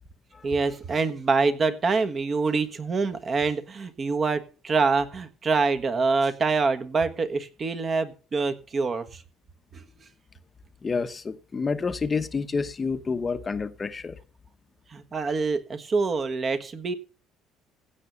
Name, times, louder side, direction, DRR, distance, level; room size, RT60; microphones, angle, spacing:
voice 1, 0.4-9.2 9.7-10.1 14.9-16.9, right 4 dB, 35° right, 1.4 m, -25 dB
voice 2, 10.8-14.2, left 4 dB, 25° left, 0.9 m, -29 dB
16.0 x 6.1 x 6.9 m
cardioid pair, 120°, 0 cm